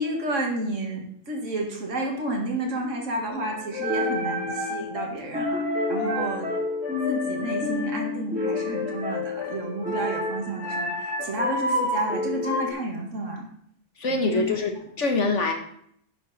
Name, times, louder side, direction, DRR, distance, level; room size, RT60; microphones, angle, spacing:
voice 1, 0.0-5.6 5.9-6.5 7.1-13.5 14.1-14.6, right 2 dB, 75° right, 0 dB, 2.3 m, -31 dB
sound 1, 3.3-12.7, left 2 dB, 5° right, 4.4 m, -28 dB
voice 2, 14.0-15.5, left 3 dB, 70° left, 4 dB, 1.7 m, -24 dB
11.0 x 7.4 x 4.2 m, 0.67 s
omnidirectional pair, 1.3 m